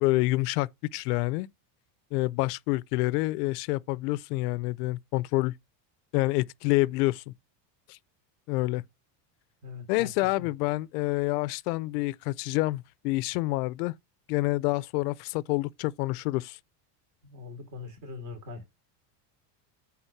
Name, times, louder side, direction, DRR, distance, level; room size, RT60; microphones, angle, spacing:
voice 1, 0.0-1.5 2.1-5.5 6.1-7.3 7.9-8.0 8.5-8.8 9.9-13.9 14.3-16.6, left 20 dB, 70° left, 0.6 m, -27 dB
voice 2, 9.6-10.1 10.4-10.5 17.2-18.6, left 4 dB, 40° right, 3.2 m, -41 dB
9.0 x 3.6 x 5.8 m
cardioid pair, 175°, 49 cm